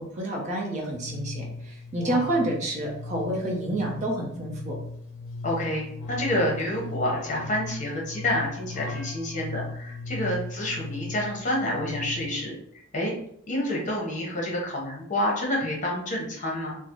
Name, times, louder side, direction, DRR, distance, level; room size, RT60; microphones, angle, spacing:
voice 1, 0.0-4.8, right 1 dB, 35° right, -1 dB, 0.7 m, -29 dB
sound 1, 0.9-12.4, left 3 dB, 75° left, 0.5 m, -37 dB
voice 2, 2.0-2.3 5.4-12.5 12.9-13.1 13.5-16.8, left 1 dB, 40° left, -2 dB, 0.9 m, -28 dB
3.8 x 2.1 x 3.0 m, 0.69 s
head